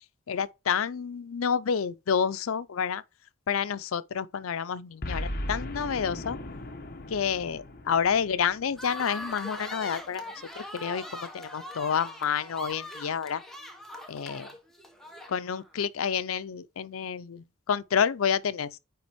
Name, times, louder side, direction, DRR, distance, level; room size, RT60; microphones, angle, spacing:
voice 1, 0.3-3.0 3.5-6.4 7.1-10.2 10.6-13.4 14.1-14.5 15.3-18.8, left 7 dB, 80° left, 0.5 m, -29 dB
Boom, 5.0-9.4, left 1 dB, 45° left, 1.1 m, -38 dB
sound 1, 8.8-15.7, equal, ahead, 1.0 m, -41 dB
9.4 x 3.4 x 3.0 m
head